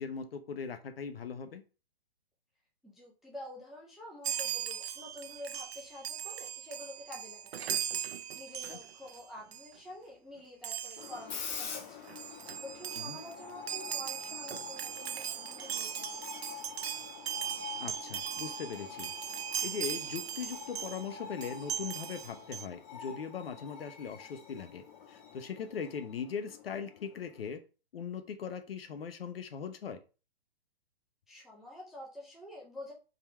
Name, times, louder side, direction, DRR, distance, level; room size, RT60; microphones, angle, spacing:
voice 1, 0.0-1.6 8.7-8.8 13.0-13.2 17.8-19.1 19.6-27.6 27.9-30.0, left 6 dB, 70° left, 8 dB, 1.0 m, -40 dB
voice 2, 2.8-16.2 31.3-32.9, left 1 dB, ahead, -4 dB, 0.3 m, -48 dB
Chime, 4.2-9.2 9.5-9.7 10.6-11.2 11.8-11.9 12.1-21.1 21.4-22.7, right 9 dB, 85° right, 0.5 m, -39 dB
Screech, 11.0-27.5, left 6 dB, 50° left, 1.4 m, -46 dB
3.8 x 2.9 x 4.6 m, 0.34 s
hypercardioid pair, 135°, 30 cm